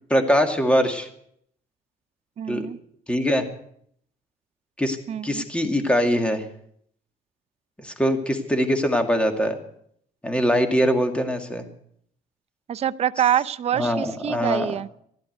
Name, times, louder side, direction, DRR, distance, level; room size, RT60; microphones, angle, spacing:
voice 1, 0.1-1.1 2.5-2.7 3.1-3.5 4.8-5.0 5.2-6.4 7.8-9.6 10.2-11.6 13.8-14.7, equal, 5° left, 6 dB, 2.3 m, -22 dB
voice 2, 2.4-2.8 5.1-5.4 12.7-14.9, right 10 dB, 40° right, 14 dB, 0.6 m, -25 dB
15.0 x 11.5 x 8.1 m, 0.68 s
cardioid pair, 110°, 17 cm